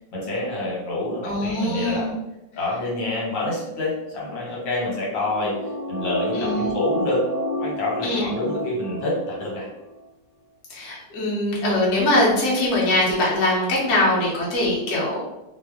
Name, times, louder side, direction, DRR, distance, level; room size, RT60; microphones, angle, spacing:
voice 1, 0.1-2.1 2.5-5.5 5.9-7.2 7.6-9.7, left 2 dB, 85° left, -4 dB, 1.7 m, -27 dB
voice 2, 1.2-2.1 6.3-6.8 8.0-8.4 10.7-15.2, left 1 dB, 60° left, -5 dB, 1.3 m, -22 dB
sound 1, 4.8-9.6 9.9-10.0, equal, 30° left, 1.0 m, -30 dB
3.4 x 2.0 x 3.4 m, 0.95 s
omnidirectional pair, 2.0 m